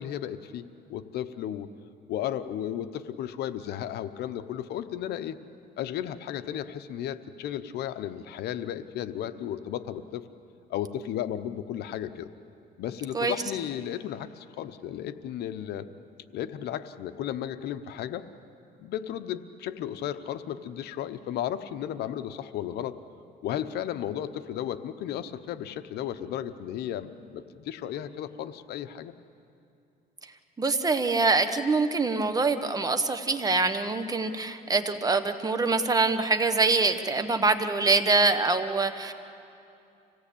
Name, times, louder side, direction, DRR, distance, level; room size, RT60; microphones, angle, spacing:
voice 1, 0.0-1.7 2.1-5.4 5.8-10.2 10.7-12.3 12.8-15.9 16.3-18.2 18.8-23.0 23.4-29.1, left 10 dB, 75° left, 11 dB, 0.9 m, -34 dB
voice 2, 30.6-39.1, right 3 dB, 20° right, 9 dB, 1.3 m, -24 dB
26.0 x 17.5 x 8.6 m, 2.6 s
cardioid pair, 110°, 17 cm